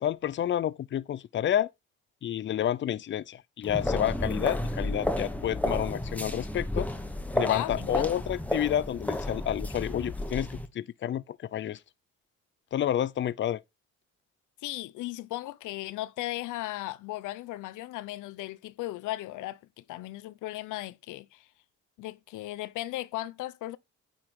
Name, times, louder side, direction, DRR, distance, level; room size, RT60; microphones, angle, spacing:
voice 1, 0.0-1.7 2.2-6.9 7.3-11.8 12.7-13.6, left 11 dB, 40° left, 0.4 m, -30 dB
sound 1, 3.6-10.7, left 1 dB, 5° left, 1.0 m, -32 dB
voice 2, 7.5-8.1 14.6-21.5 22.0-23.8, left 16 dB, 90° left, 0.6 m, -36 dB
8.8 x 3.7 x 4.6 m
cardioid pair, 90°, 30 cm